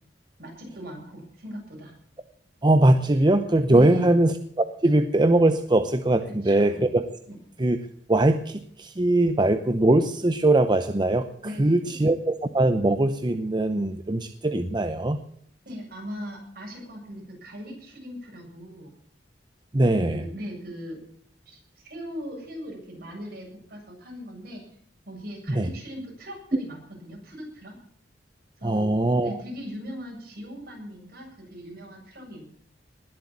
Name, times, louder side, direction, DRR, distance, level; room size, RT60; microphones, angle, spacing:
voice 1, 0.4-1.9 3.7-4.2 6.3-6.9 7.3-7.4 11.4-12.0 15.7-18.9 19.9-21.0 21.5-24.6 25.1-27.8 28.6-28.9 29.2-32.4, equal, 60° right, -1 dB, 7.6 m, -39 dB
voice 2, 2.6-7.1 7.6-7.8 8.1-11.3 11.6-15.2 19.7-20.2 25.5-25.7 28.6-29.4, right 1 dB, 25° right, 8 dB, 0.7 m, -21 dB
20.0 x 8.0 x 7.5 m, 0.65 s
head